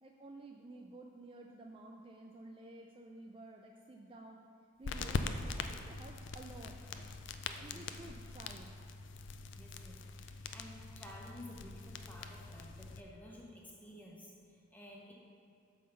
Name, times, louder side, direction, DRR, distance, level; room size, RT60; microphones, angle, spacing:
voice 1, 0.0-4.4 4.8-7.1 7.6-8.7, right 2 dB, 25° right, 1 dB, 0.3 m, -52 dB
sound 1, 4.8-13.0, left 4 dB, 55° left, 0.4 m, -43 dB
voice 2, 7.5-7.8 9.5-15.1, left 1 dB, 10° left, -2 dB, 0.9 m, -53 dB
9.1 x 3.7 x 6.7 m, 2.5 s
head